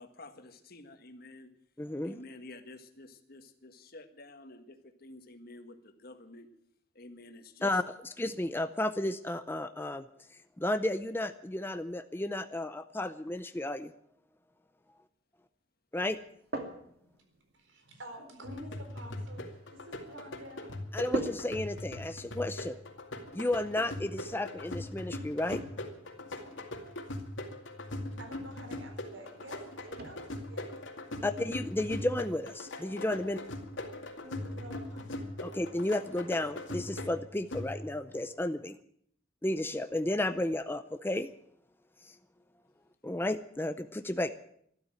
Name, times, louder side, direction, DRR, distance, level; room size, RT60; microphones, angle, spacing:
voice 1, 0.0-1.5 2.0-6.5 6.9-7.8, left 2 dB, 50° left, 7 dB, 1.7 m, -50 dB
voice 2, 1.8-2.2 7.6-10.0 10.6-13.9 15.9-16.2 20.9-22.7 23.3-25.6 31.2-33.4 35.4-38.8 39.4-41.3 42.1-42.2 43.0-44.3, left 1 dB, 10° left, 9 dB, 0.6 m, -33 dB
sound 1, 16.1-34.1, right 1 dB, 55° right, 2.4 m, -47 dB
voice 3, 17.5-20.7 22.6-22.7 28.2-30.7 31.1-31.3 34.2-35.1, equal, 75° right, 5 dB, 4.2 m, -49 dB
sound 2, 18.4-38.1, left 1 dB, 80° left, 2.3 m, -41 dB
12.5 x 12.5 x 9.0 m, 0.69 s
head